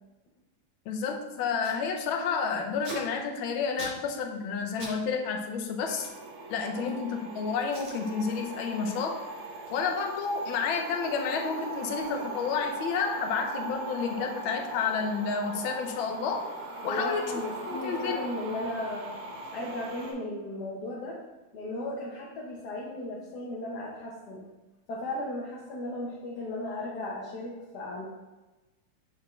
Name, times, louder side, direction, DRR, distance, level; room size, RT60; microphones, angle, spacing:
voice 1, 0.9-6.1 6.5-9.2 9.7-16.5 16.8-17.3 17.7-18.2, left 5 dB, 80° left, 4 dB, 1.5 m, -30 dB
Packing tape duct tape, 1.6-1.8 2.1-5.0 5.2-7.1 7.6-8.0 8.4-8.7 9.0-15.2 15.5-15.6 15.8-18.2 18.5-20.4, right 2 dB, 40° right, 1.7 m, -48 dB
sound 1, 5.8-20.1, right 2 dB, 75° right, 1.7 m, -39 dB
voice 2, 16.8-19.1 19.5-21.2 21.5-24.5 24.9-28.0, left 1 dB, 60° left, -3 dB, 1.3 m, -36 dB
7.2 x 4.3 x 3.1 m, 1.1 s
omnidirectional pair, 2.2 m